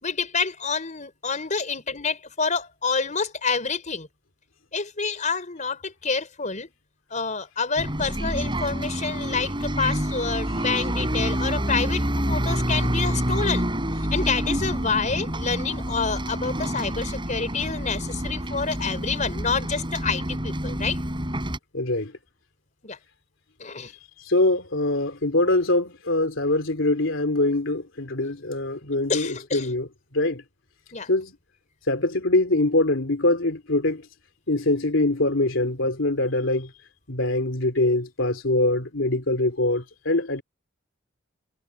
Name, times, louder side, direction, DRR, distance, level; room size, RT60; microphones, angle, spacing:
voice 1, 0.0-4.1 4.7-6.7 7.1-13.6 14.1-21.0 22.8-23.0 23.6-23.9 29.1-29.7 30.9-31.1, left 5 dB, 40° left, 4.6 m, -28 dB
Bus, 7.8-21.6, equal, 25° right, 6.9 m, -27 dB
voice 2, 21.7-22.1 24.2-29.9 30.1-30.4 31.1-31.3 31.9-34.0 34.5-36.7 37.1-40.4, left 2 dB, 75° left, 3.1 m, -23 dB
head